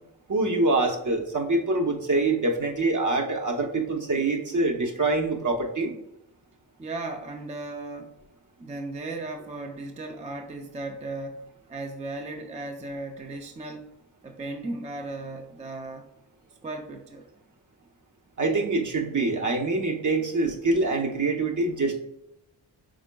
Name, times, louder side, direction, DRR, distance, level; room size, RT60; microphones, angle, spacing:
voice 1, 0.3-5.9 18.4-22.0, right 2 dB, 45° right, 2 dB, 0.8 m, -25 dB
voice 2, 6.8-8.2 8.6-13.9 14.2-16.1 16.6-17.2, right 2 dB, 20° right, 3 dB, 0.4 m, -36 dB
5.0 x 3.6 x 2.2 m, 0.83 s
cardioid pair, 60°, 41 cm